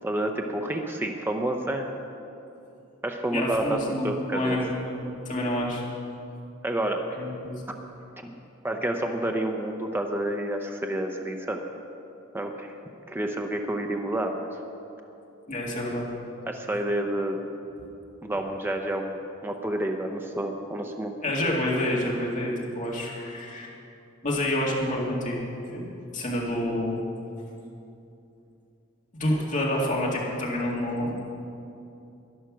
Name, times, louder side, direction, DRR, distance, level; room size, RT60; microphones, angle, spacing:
voice 1, 0.0-1.9 3.0-4.6 6.6-7.0 8.2-8.3 8.6-11.6 12.3-12.7 13.1-14.5 16.5-17.4 18.2-21.1, right 1 dB, 10° right, 3 dB, 0.6 m, -29 dB
voice 2, 3.3-5.8 7.1-7.6 15.5-16.1 21.2-23.7 24.2-25.4 25.7-27.0 29.1-31.3, left 1 dB, 35° left, -3 dB, 2.1 m, -28 dB
11.5 x 11.0 x 6.1 m, 2.8 s
head